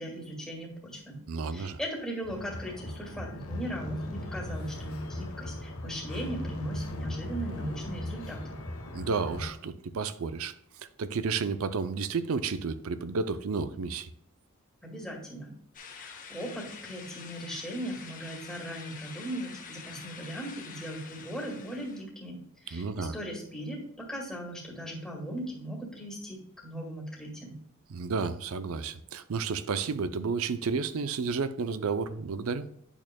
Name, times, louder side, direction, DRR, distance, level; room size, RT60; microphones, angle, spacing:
voice 1, 0.0-1.2 1.5-8.6 14.8-15.5 15.9-27.5, right 1 dB, 5° left, -1 dB, 1.9 m, -39 dB
voice 2, 1.3-1.8 8.9-10.5 11.0-14.1 22.7-23.2 27.9-32.7, right 5 dB, 70° right, 13 dB, 0.5 m, -31 dB
sound 1, 2.2-9.5, left 1 dB, 75° left, 1.1 m, -38 dB
sound 2, 15.7-22.0, left 6 dB, 40° left, 0.9 m, -46 dB
8.9 x 6.4 x 2.2 m, 0.72 s
head